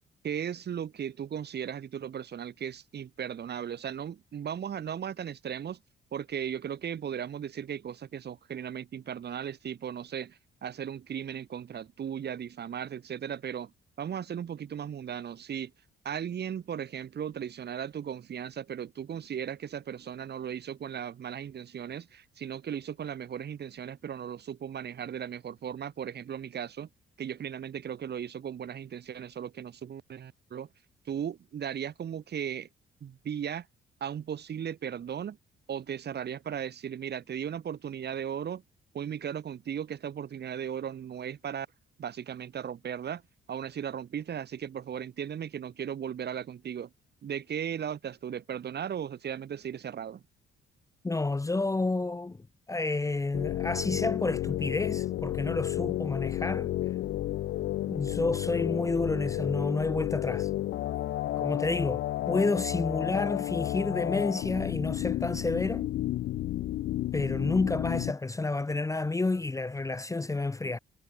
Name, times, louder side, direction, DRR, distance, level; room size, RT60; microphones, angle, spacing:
voice 1, 0.2-5.8 6.1-13.7 14.0-15.7 16.1-26.9 27.2-30.7 31.1-32.7 33.0-33.7 34.0-35.4 35.7-38.6 38.9-41.7 42.0-43.2 43.5-46.9 47.2-50.2, right 8 dB, 55° right, 3.4 m, -36 dB
voice 2, 51.0-52.4 52.7-56.7 57.9-60.5 61.4-65.9 67.1-70.8, left 3 dB, 15° left, 0.8 m, -30 dB
sound 1, 53.3-68.1, left 14 dB, 65° left, 0.5 m, -32 dB
cardioid pair, 90°, 20 cm